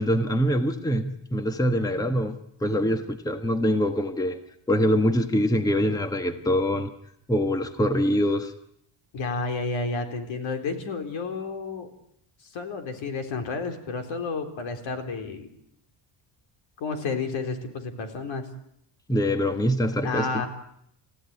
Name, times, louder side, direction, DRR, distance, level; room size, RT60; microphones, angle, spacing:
voice 1, 0.0-4.4 4.7-6.9 7.3-8.5 19.1-20.4, equal, 5° left, 8 dB, 1.3 m, -24 dB
voice 2, 9.1-11.9 12.4-15.5 16.8-18.5 20.0-20.5, left 3 dB, 65° left, 6 dB, 4.1 m, -31 dB
29.5 x 15.5 x 9.7 m, 0.74 s
cardioid pair, 140°, 49 cm